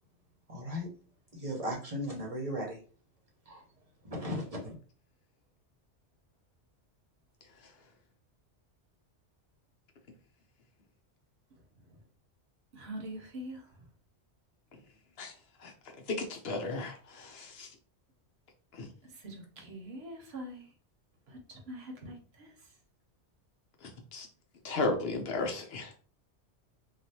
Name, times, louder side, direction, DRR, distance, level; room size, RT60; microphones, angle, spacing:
voice 1, 0.5-0.9 1.3-2.8 3.5-3.6 4.0-4.7, equal, 35° right, -1 dB, 0.9 m, -36 dB
voice 2, 12.7-13.6 19.2-20.7 21.3-22.5, right 1 dB, 65° right, 2 dB, 1.0 m, -43 dB
voice 3, 16.1-17.7 18.7-18.9 23.8-24.3 24.6-26.0, left 2 dB, 65° left, 3 dB, 0.8 m, -34 dB
3.3 x 2.4 x 2.7 m, 0.38 s
omnidirectional pair, 1.2 m